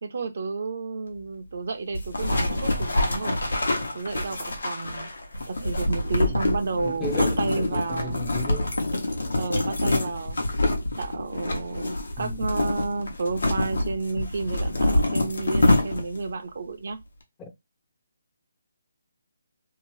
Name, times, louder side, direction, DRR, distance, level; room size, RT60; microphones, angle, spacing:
voice 1, 0.0-3.4 3.9-5.1 5.5-8.2 9.4-10.4 11.0-17.0, right 3 dB, 60° right, 0.6 m, -31 dB
sound 1, 1.9-16.3, left 1 dB, 80° left, 0.8 m, -26 dB
voice 2, 6.8-8.7 12.2-12.4 17.4-17.5, left 2 dB, 15° left, 0.5 m, -36 dB
2.7 x 2.0 x 3.0 m
hypercardioid pair, 160°, 0 cm